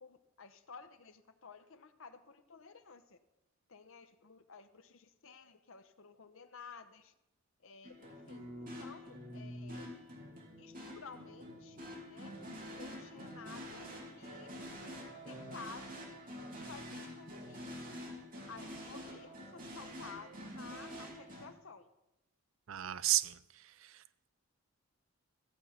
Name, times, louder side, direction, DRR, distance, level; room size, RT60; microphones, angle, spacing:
voice 1, 0.0-3.2 3.7-7.1 7.6-9.9 10.6-12.4 12.7-13.8 14.2-14.5 15.2-16.4 16.7-17.8 18.5-21.9, left 5 dB, 60° left, 10 dB, 0.8 m, -53 dB
sound 1, 7.8-21.5, equal, 40° right, 2.2 m, -47 dB
voice 2, 22.7-24.0, right 15 dB, 60° right, 16 dB, 0.4 m, -34 dB
14.5 x 7.8 x 5.7 m, 0.94 s
head